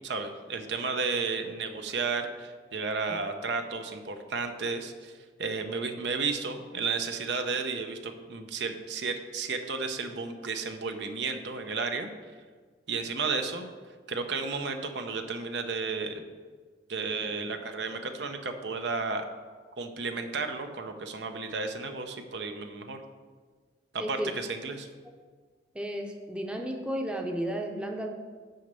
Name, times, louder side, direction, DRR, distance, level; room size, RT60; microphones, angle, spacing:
voice 1, 0.0-5.1 5.4-12.1 12.9-13.6 14.1-16.3 16.9-19.3 19.8-23.0 23.9-24.9, right 4 dB, 80° right, 6 dB, 0.7 m, -33 dB
voice 2, 24.0-24.3 25.7-28.1, equal, 5° right, 2 dB, 0.6 m, -33 dB
6.5 x 5.1 x 6.8 m, 1.5 s
head